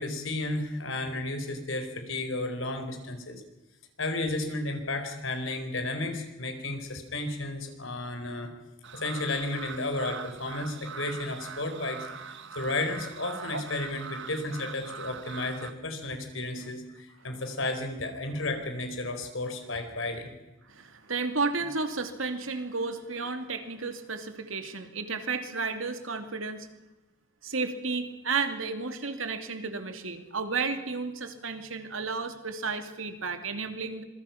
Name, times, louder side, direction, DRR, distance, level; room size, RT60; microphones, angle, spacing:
voice 1, 0.0-3.4 4.0-8.5 8.9-12.1 12.5-20.3, left 2 dB, 70° left, 6 dB, 4.6 m, -33 dB
sound 1, 8.8-15.7, right 6 dB, 60° right, 1.4 m, -42 dB
voice 2, 20.7-26.7 27.4-34.0, right 4 dB, 75° right, 7 dB, 2.7 m, -32 dB
26.0 x 23.5 x 6.0 m, 1.0 s
head